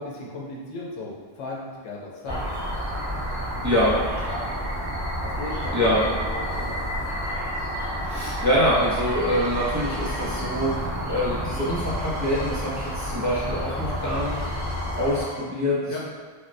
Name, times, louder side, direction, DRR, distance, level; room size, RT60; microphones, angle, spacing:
voice 1, 0.0-2.4 3.6-4.0 4.3-4.7 5.2-7.0 15.9-16.0, left 2 dB, 85° left, -3 dB, 0.9 m, -36 dB
sound 1, 2.3-15.2, equal, 65° right, 1.1 m, -30 dB
voice 2, 3.6-4.0 5.7-6.0 8.0-15.8, equal, 30° right, -8 dB, 0.3 m, -25 dB
sound 2, 8.8-13.1 13.4-15.4, left 2 dB, 45° left, 0.5 m, -41 dB
3.4 x 2.1 x 2.5 m, 1.5 s
omnidirectional pair, 1.1 m